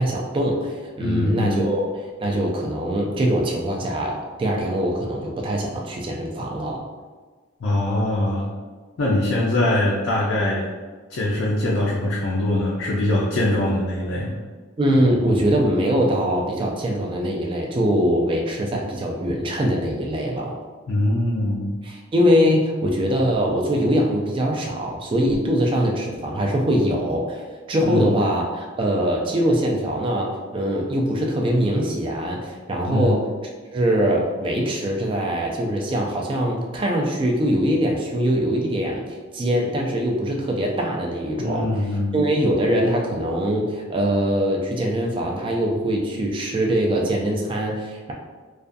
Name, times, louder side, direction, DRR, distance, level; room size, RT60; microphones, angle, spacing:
voice 1, 0.0-1.9 2.2-6.8 14.8-20.5 21.8-27.4 27.7-33.2 33.7-39.0 39.3-41.8 42.1-48.1, equal, 25° right, 0 dB, 0.3 m, -22 dB
voice 2, 1.0-1.6 7.6-8.5 9.0-10.7 11.1-14.4 20.9-21.7 27.8-28.1 32.9-33.1 41.4-42.2, left 1 dB, 75° left, -4 dB, 0.4 m, -22 dB
2.4 x 2.2 x 2.5 m, 1.4 s
head